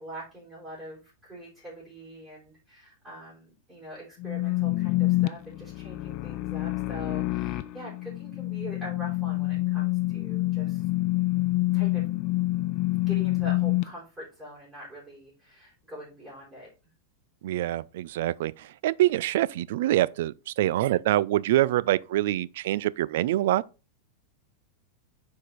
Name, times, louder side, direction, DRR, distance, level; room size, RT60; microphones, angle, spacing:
voice 1, 0.0-10.8 11.7-12.1 13.1-16.7, equal, 5° right, 4.3 m, -43 dB
sound 1, 4.2-13.8, left 19 dB, 45° left, 0.6 m, -27 dB
voice 2, 17.4-23.6, right 14 dB, 70° right, 0.4 m, -25 dB
6.8 x 4.7 x 4.1 m
supercardioid pair, 140°, 0 cm